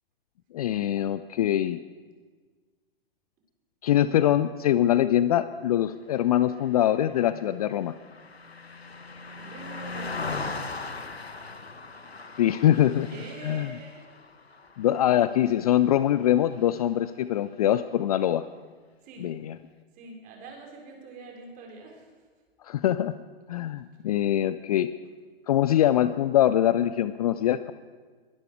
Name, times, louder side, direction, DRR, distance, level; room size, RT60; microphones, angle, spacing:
voice 1, 0.5-1.8 3.8-7.9 12.4-13.1 13.4-13.7 14.8-18.4 19.2-19.6 22.6-23.1 23.5-24.9 25.5-27.7, left 12 dB, 40° left, 14 dB, 0.4 m, -23 dB
Car passing by, 6.6-16.2 16.6-16.8, left 3 dB, 85° left, 1.1 m, -39 dB
voice 2, 9.4-10.3 13.1-14.0 19.0-19.3 19.9-22.3, right 3 dB, 30° right, 0 dB, 4.1 m, -44 dB
23.0 x 11.5 x 4.6 m, 1.5 s
figure-of-eight pair, 110°, 30 cm